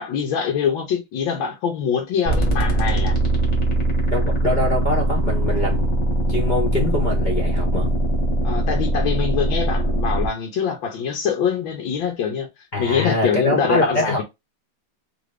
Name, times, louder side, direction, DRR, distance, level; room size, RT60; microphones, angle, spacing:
voice 1, 0.0-3.1 8.4-12.5 12.8-14.2, left 7 dB, 90° left, 1.6 m, -24 dB
sound 1, 2.2-10.3, right 1 dB, 25° left, 1.2 m, -21 dB
voice 2, 4.1-5.9 6.3-7.9 12.7-14.2, left 1 dB, 60° left, 0.5 m, -23 dB
3.4 x 2.5 x 3.2 m
omnidirectional pair, 2.1 m